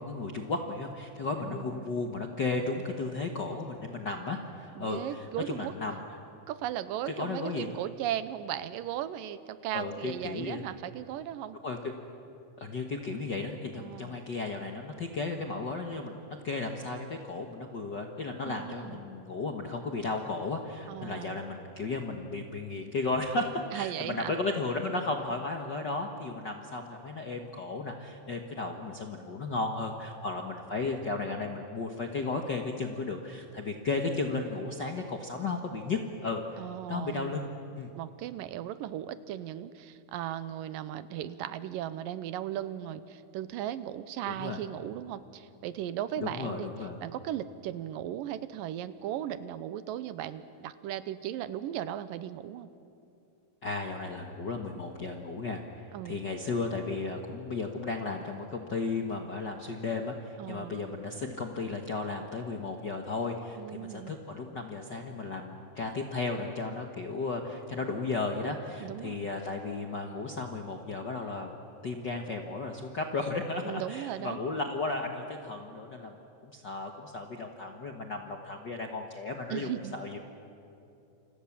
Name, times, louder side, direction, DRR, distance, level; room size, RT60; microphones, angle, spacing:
voice 1, 0.0-6.0 7.1-7.7 9.7-10.6 11.6-11.8 12.6-16.2 16.4-36.4 36.9-37.5 37.8-37.9 44.3-44.6 46.2-47.0 53.6-71.5 71.8-76.1 76.4-80.2, left 3 dB, 75° left, 3 dB, 1.0 m, -34 dB
voice 2, 1.4-1.9 4.8-5.7 6.5-11.6 13.8-14.2 18.4-19.0 20.9-21.4 23.7-24.3 36.6-37.3 37.9-46.7 47.0-52.7 55.9-56.3 60.4-60.8 63.6-64.2 68.8-69.3 73.6-74.4 79.5-80.0, right 11 dB, 75° right, 13 dB, 2.4 m, -37 dB
29.0 x 26.0 x 7.3 m, 2.7 s
omnidirectional pair, 4.3 m